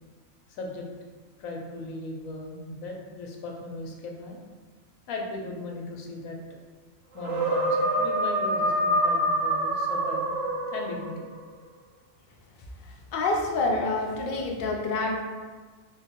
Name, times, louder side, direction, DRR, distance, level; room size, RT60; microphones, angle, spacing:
voice 1, 0.5-0.9 1.4-4.4 5.1-6.4 7.1-10.4 10.7-11.2, left 2 dB, 90° left, 1 dB, 1.1 m, -37 dB
sound 1, 7.2-11.3, right 1 dB, 70° right, 0.9 m, -26 dB
voice 2, 13.1-15.2, left 2 dB, 60° left, 0 dB, 0.5 m, -27 dB
3.6 x 2.9 x 2.9 m, 1.4 s
omnidirectional pair, 1.4 m